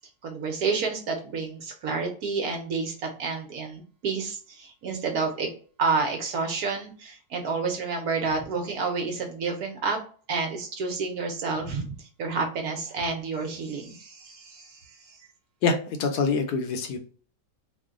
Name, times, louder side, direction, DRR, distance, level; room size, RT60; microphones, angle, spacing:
voice 1, 0.2-5.5 5.8-10.0 10.3-15.2, right 4 dB, 65° right, 3 dB, 1.1 m, -29 dB
voice 2, 15.6-17.0, left 4 dB, 75° left, 5 dB, 1.1 m, -25 dB
3.0 x 2.2 x 3.5 m, 0.43 s
omnidirectional pair, 1.9 m